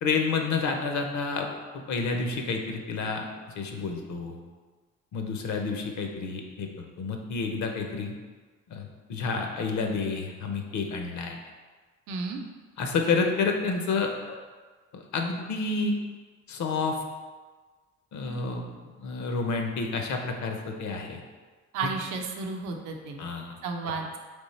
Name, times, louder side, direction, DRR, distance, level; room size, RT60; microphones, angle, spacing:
voice 1, 0.0-3.3 3.6-4.4 5.1-8.1 8.7-11.4 12.8-14.4 14.9-15.9 16.5-17.0 18.1-18.7 19.0-21.2 23.2-23.6 23.8-24.0, left 4 dB, 70° left, 3 dB, 0.7 m, -29 dB
voice 2, 12.1-12.4 21.7-23.2 23.6-24.2, right 4 dB, 85° right, 2 dB, 0.6 m, -32 dB
3.6 x 3.1 x 4.1 m, 1.4 s
cardioid pair, 90°, 30 cm